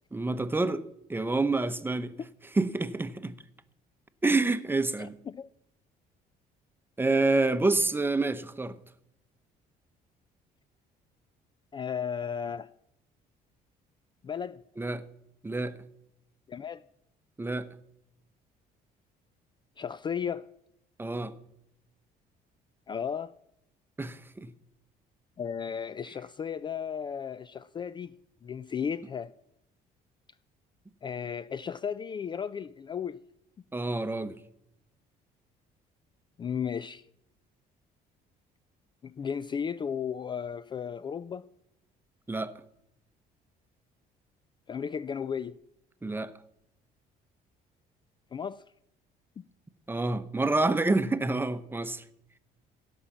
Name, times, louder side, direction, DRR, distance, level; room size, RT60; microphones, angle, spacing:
voice 1, 0.1-0.8 1.1-2.2 2.6-3.3 4.2-5.1 7.0-8.8 14.8-15.0 15.4-15.7 17.4-17.7 21.0-21.3 24.0-24.5 33.7-34.3 42.3-42.5 46.0-46.3 49.9-52.0, right 2 dB, 15° right, 0.8 m, -28 dB
voice 2, 5.0-5.5 11.7-12.7 14.2-14.6 16.5-16.8 19.8-20.5 22.9-23.3 25.4-28.1 28.4-29.3 31.0-33.2 36.4-37.1 39.0-41.5 44.7-45.5 48.3-48.6 49.4-49.5, left 7 dB, 30° left, 0.3 m, -34 dB
16.5 x 5.6 x 7.2 m
cardioid pair, 110°, 17 cm